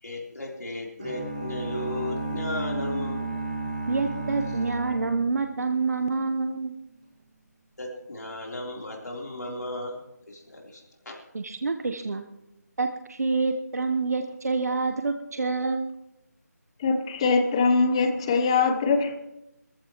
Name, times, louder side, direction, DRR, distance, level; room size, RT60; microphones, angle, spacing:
voice 1, 0.0-3.2 7.8-10.0 10.3-11.2, left 2 dB, 70° left, -2 dB, 3.6 m, -35 dB
sound 1, 1.0-6.0, right 2 dB, 25° right, 2.4 m, -33 dB
voice 2, 3.9-6.7 11.3-12.2 12.8-15.9, right 4 dB, 65° right, 6 dB, 1.0 m, -27 dB
voice 3, 16.8-19.2, left 4 dB, 20° left, 7 dB, 0.9 m, -22 dB
22.5 x 14.5 x 3.1 m, 0.91 s
figure-of-eight pair, 165°, 9 cm